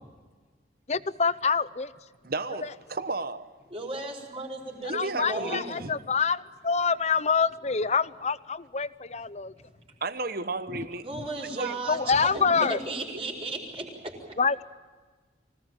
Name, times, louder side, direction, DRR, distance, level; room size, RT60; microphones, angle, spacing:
voice 1, 0.9-1.9 2.6-2.7 4.8-9.5 10.7-10.9 11.9-12.8 14.4-14.6, left 5 dB, 35° left, 0.7 m, -26 dB
voice 2, 2.2-3.5 4.9-5.9 10.0-11.0 11.6-11.8 13.1-13.2, right 3 dB, 50° right, 1.1 m, -33 dB
voice 3, 3.7-5.8 11.0-14.2, right 2 dB, 30° right, 4.9 m, -35 dB
24.5 x 18.0 x 8.9 m
head